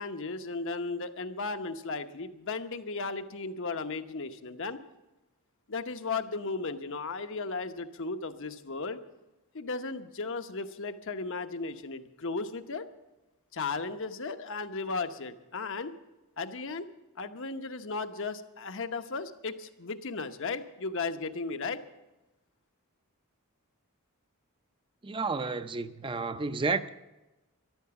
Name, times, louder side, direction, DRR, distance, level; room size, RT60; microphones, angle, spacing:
voice 1, 0.0-4.8 5.7-9.0 9.5-12.9 13.5-15.9 16.4-16.9 17.2-21.8, left 4 dB, 60° left, 1.0 m, -35 dB
voice 2, 25.0-26.9, right 4 dB, 25° right, 0.5 m, -31 dB
13.5 x 11.5 x 7.0 m
head